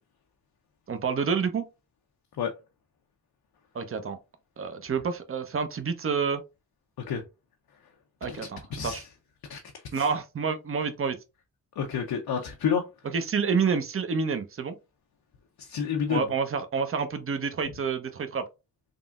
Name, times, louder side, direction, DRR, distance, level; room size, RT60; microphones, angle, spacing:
voice 1, 0.9-1.6 3.7-4.2 4.6-6.4 8.2-9.0 9.9-11.2 13.1-14.8 16.1-18.5, right 5 dB, 35° right, 0.6 m, -28 dB
voice 2, 8.7-9.1 9.5-9.6 9.9-10.1 11.8-12.8 15.6-16.3, left 7 dB, 75° left, 0.6 m, -29 dB
3.6 x 2.0 x 2.4 m
cardioid pair, 50°, 37 cm